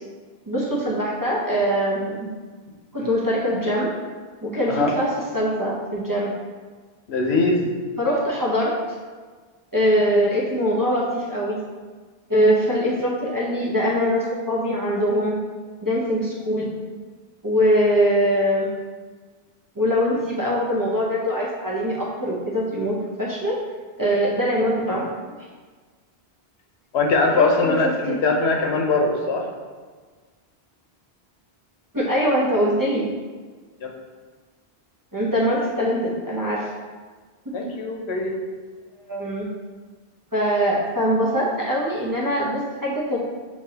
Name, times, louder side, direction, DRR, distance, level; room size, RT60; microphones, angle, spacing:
voice 1, 0.5-2.3 2.9-3.9 4.4-6.3 8.0-8.7 9.7-11.6 12.3-15.3 15.8-16.7 17.4-18.7 19.8-23.6 24.0-25.4 27.3-27.8 28.1-28.2 31.9-33.1 35.1-36.7 39.1-39.5 40.3-43.2, equal, 25° right, -5 dB, 0.6 m, -22 dB
voice 2, 7.1-7.7 26.9-29.5 33.8-33.9 37.5-38.4, left 3 dB, 90° left, 1 dB, 1.0 m, -21 dB
6.6 x 2.8 x 2.8 m, 1.4 s
omnidirectional pair, 1.1 m